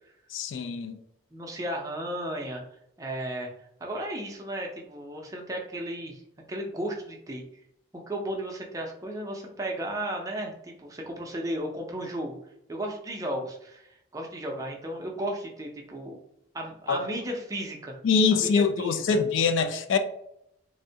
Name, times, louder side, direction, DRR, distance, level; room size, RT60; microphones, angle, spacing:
voice 1, 0.3-1.0 16.9-17.0 18.0-20.0, left 5 dB, 75° left, 0.3 m, -24 dB
voice 2, 1.3-2.6 3.0-3.5 3.8-6.2 6.5-7.4 8.1-12.4 12.7-16.2 16.5-18.0 18.3-19.2, right 1 dB, 15° right, 0.4 m, -34 dB
3.4 x 2.1 x 2.7 m
head